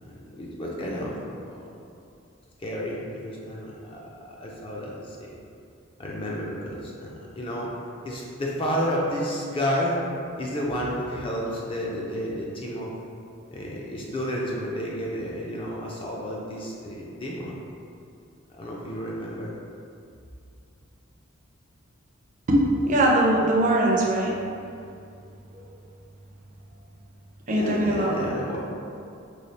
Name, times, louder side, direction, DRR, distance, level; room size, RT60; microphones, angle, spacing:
voice 1, 0.0-1.2 1.5-1.7 2.6-4.0 4.4-5.4 6.0-7.7 8.0-10.1 10.4-12.9 13.5-17.6 18.6-19.5 27.5-28.6, equal, 25° left, -3 dB, 0.4 m, -31 dB
voice 2, 22.5-24.3 27.5-28.1, right 1 dB, 35° right, -2 dB, 0.4 m, -21 dB
3.2 x 2.3 x 3.9 m, 2.5 s
head